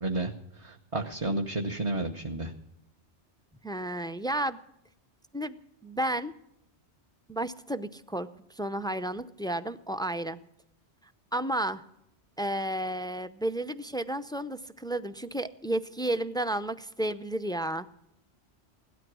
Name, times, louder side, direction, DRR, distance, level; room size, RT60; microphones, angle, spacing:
voice 1, 0.0-2.5, right 2 dB, 30° right, 2 dB, 1.0 m, -32 dB
voice 2, 3.6-4.6 5.3-5.5 5.8-6.3 7.3-8.3 8.6-10.4 11.3-11.8 12.4-17.9, right 1 dB, 5° left, 11 dB, 0.3 m, -32 dB
17.5 x 12.5 x 6.2 m, 0.80 s
omnidirectional pair, 1.2 m